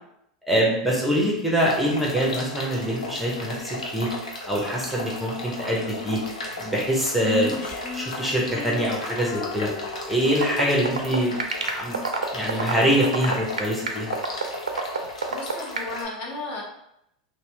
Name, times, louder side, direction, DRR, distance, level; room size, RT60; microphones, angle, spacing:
voice 1, 0.4-4.1 4.5-6.2 6.6-7.6 7.9-9.7 10.1-12.0 12.3-14.1, equal, ahead, -4 dB, 0.7 m, -24 dB
sound 1, 1.6-16.0, left 2 dB, 80° left, 0.5 m, -36 dB
Female singing, 7.2-10.8, left 1 dB, 25° left, 0.4 m, -35 dB
sound 2, 10.3-15.9, right 5 dB, 80° right, 0.4 m, -26 dB
voice 2, 15.3-16.6, left 2 dB, 45° left, -3 dB, 0.9 m, -34 dB
2.8 x 2.1 x 3.2 m, 0.79 s
figure-of-eight pair, 90°, 4 cm